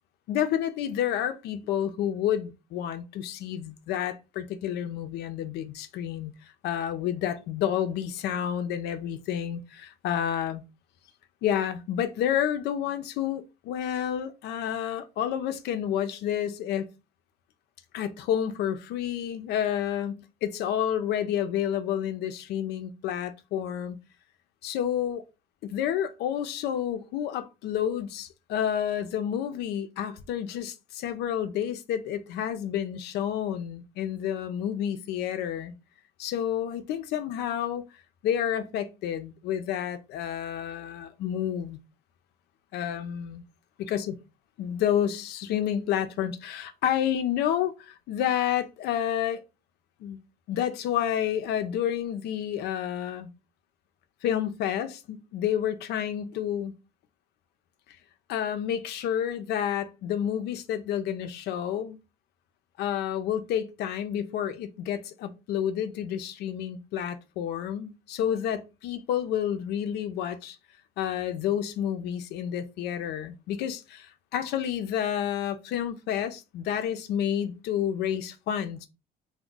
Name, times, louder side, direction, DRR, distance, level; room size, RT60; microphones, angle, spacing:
voice 1, 0.3-6.3 6.6-10.6 11.4-16.9 17.9-24.0 24.6-25.2 25.6-35.7 36.2-37.9 38.2-41.8 42.7-43.4 43.8-44.2 44.6-49.4 50.0-50.2 50.5-53.3 54.2-56.7 58.3-62.0 62.8-70.6 71.0-78.9, left 10 dB, 75° left, 0.4 m, -30 dB
2.3 x 2.1 x 3.7 m
cardioid pair, 110°, 17 cm